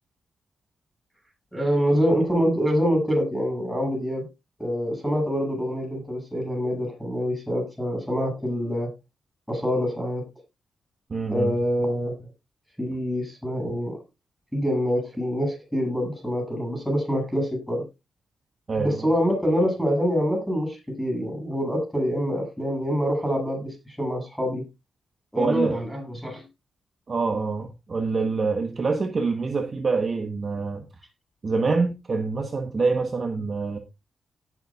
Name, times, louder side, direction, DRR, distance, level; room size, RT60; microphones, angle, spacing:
voice 1, 1.5-4.3 4.6-8.9 9.5-10.2 11.3-12.3 12.8-14.0 14.5-17.9 18.8-24.7 25.3-26.4, equal, ahead, 3 dB, 7.7 m, -25 dB
voice 2, 11.1-11.6 18.7-19.1 25.4-25.8 27.1-30.8 31.4-33.8, right 4 dB, 40° right, 6 dB, 1.3 m, -26 dB
18.0 x 7.0 x 2.5 m, 0.24 s
wide cardioid pair, 120°, 0 cm